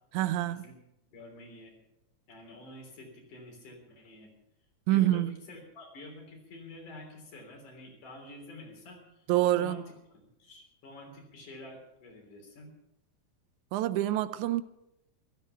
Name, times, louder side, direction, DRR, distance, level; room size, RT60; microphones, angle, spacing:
voice 1, 0.1-0.7 4.9-5.4 9.3-9.8 13.7-14.6, right 14 dB, 80° right, 2.1 m, -26 dB
voice 2, 1.1-1.7 2.3-4.3 4.9-9.3 9.5-9.9 10.4-12.7 14.3-14.4, left 2 dB, 90° left, 5.0 m, -48 dB
15.0 x 13.5 x 5.8 m
omnidirectional pair, 3.4 m